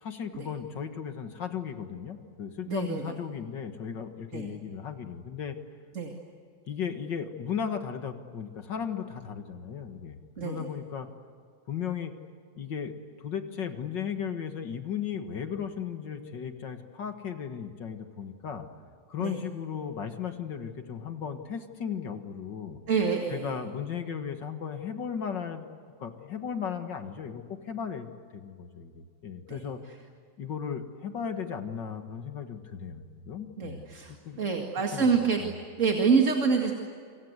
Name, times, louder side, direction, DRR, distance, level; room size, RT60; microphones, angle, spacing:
voice 1, 0.0-5.6 6.7-11.1 11.7-12.1 12.6-18.7 19.1-22.8 23.3-25.7 26.0-29.8 30.4-33.9 34.3-34.4 34.9-35.5, left 7 dB, 70° left, 7 dB, 2.3 m, -36 dB
voice 2, 2.7-3.0 4.3-4.5 6.0-6.1 10.4-10.6 19.2-19.4 22.9-23.5 29.5-29.6 33.6-34.1 34.4-35.4 35.8-36.7, right 5 dB, 40° right, 2 dB, 2.5 m, -26 dB
28.5 x 25.0 x 8.1 m, 2.1 s
omnidirectional pair, 2.0 m